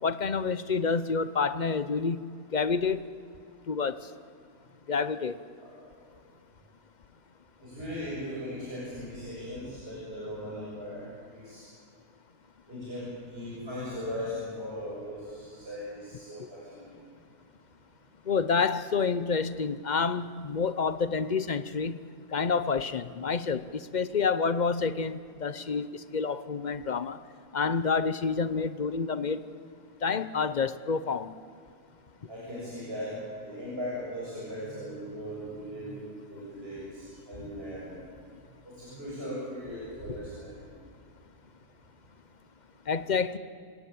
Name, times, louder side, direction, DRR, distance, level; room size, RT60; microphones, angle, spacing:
voice 1, 0.0-2.2 2.5-3.1 3.7-4.0 4.9-5.3 16.4-16.5 18.3-22.0 22.3-27.2 27.5-29.4 30.0-31.3 42.9-43.4, left 5 dB, 45° left, 14 dB, 0.6 m, -28 dB
voice 2, 5.6-6.0 7.6-11.7 12.7-16.9 32.3-38.0 38.6-40.6, equal, 40° right, -8 dB, 7.4 m, -38 dB
28.5 x 17.0 x 8.5 m, 2.3 s
omnidirectional pair, 1.6 m